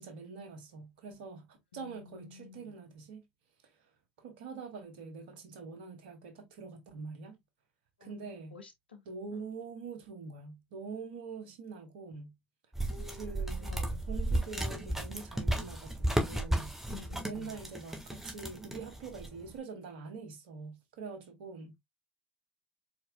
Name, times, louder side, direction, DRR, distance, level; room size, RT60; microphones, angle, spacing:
voice 1, 0.0-3.2 3.6-3.9 4.2-7.4 8.0-8.6 9.0-12.3 13.1-13.8 14.1-16.8 17.2-21.8, right 4 dB, 75° right, 1.3 m, -44 dB
voice 2, 1.7-2.7 8.0-8.1 8.5-9.0 9.3-9.4 12.9-13.3 13.6-14.0 16.8-17.6, left 7 dB, 90° left, 0.9 m, -50 dB
sound 1, 12.7-19.5, right 1 dB, 5° right, 1.6 m, -34 dB
4.5 x 4.5 x 2.3 m
figure-of-eight pair, 60°, 5 cm